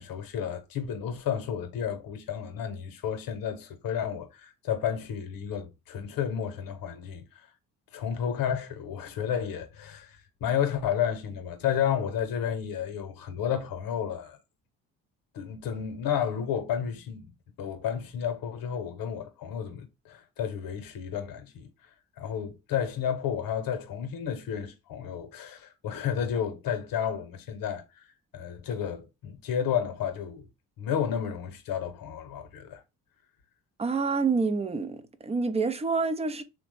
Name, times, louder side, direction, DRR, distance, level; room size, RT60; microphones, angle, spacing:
voice 1, 0.0-7.5 7.9-14.4 15.3-17.3 17.6-21.7 22.2-27.8 28.3-30.5 30.8-32.8, left 8 dB, 60° left, 0.9 m, -31 dB
voice 2, 33.8-36.4, right 4 dB, 15° right, 0.5 m, -27 dB
3.1 x 2.1 x 3.1 m
supercardioid pair, 60°, 38 cm